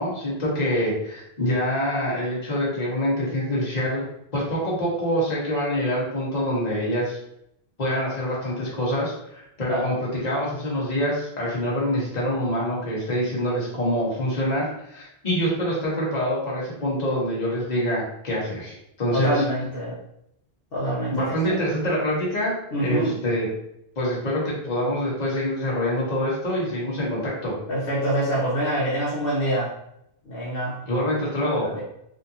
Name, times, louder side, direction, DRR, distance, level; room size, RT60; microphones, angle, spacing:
voice 1, 0.0-4.1 4.3-7.2 7.8-19.4 21.1-23.5 24.0-27.5 30.8-31.7, equal, 40° left, -5 dB, 1.3 m, -25 dB
voice 2, 19.1-19.9 20.7-21.6 22.7-23.1 27.7-29.7 30.3-30.8 31.7-31.8, right 1 dB, 65° left, -7 dB, 1.2 m, -25 dB
3.6 x 2.7 x 2.7 m, 0.76 s
omnidirectional pair, 1.1 m